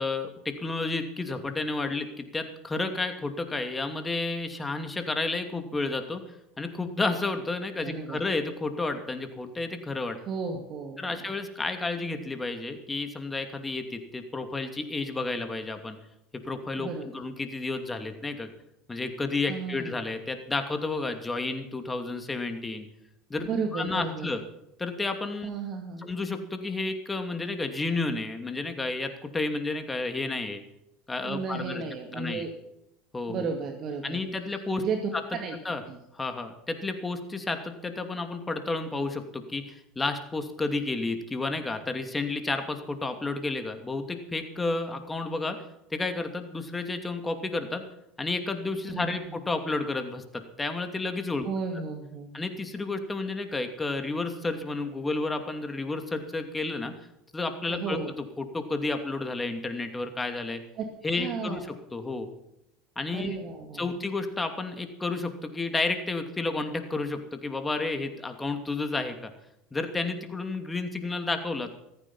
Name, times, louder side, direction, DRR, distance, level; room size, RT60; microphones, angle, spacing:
voice 1, 0.0-6.2 6.6-10.2 11.0-16.0 16.4-18.5 18.9-22.9 23.3-24.4 24.8-25.5 26.0-30.6 31.1-31.8 32.1-32.4 33.1-33.5 34.0-34.8 35.6-35.8 36.1-45.6 45.9-47.8 48.2-51.5 52.3-56.9 57.3-58.0 58.4-60.6 61.0-61.6 61.9-62.3 63.0-63.4 63.7-69.3 69.7-71.8, left 3 dB, 15° left, 7 dB, 2.6 m, -31 dB
voice 2, 7.8-8.2 10.3-11.0 16.8-17.1 19.5-20.0 23.5-24.3 25.4-26.1 31.2-32.5 33.3-34.2 34.5-35.6 35.9-36.0 48.9-49.2 51.4-52.4 57.7-58.1 60.8-61.7 63.1-63.9, right 5 dB, 50° right, 5 dB, 2.2 m, -34 dB
15.0 x 14.5 x 5.7 m, 0.84 s
hypercardioid pair, 75°, 0 cm